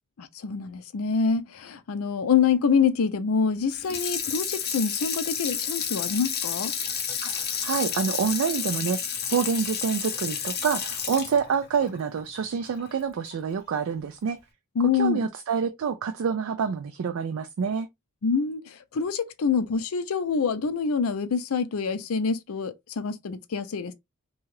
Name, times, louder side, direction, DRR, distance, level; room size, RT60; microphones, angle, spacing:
voice 1, 0.2-6.7 14.8-15.3 18.2-23.9, left 5 dB, 80° left, 0.5 m, -26 dB
Water tap faucet / Sink (filling or washing), 3.7-12.9 13.3-13.4, left 7 dB, 45° left, 0.7 m, -31 dB
voice 2, 7.2-9.0 9.3-14.4 14.9-17.9, right 6 dB, 70° right, 0.3 m, -27 dB
2.8 x 2.3 x 3.1 m
head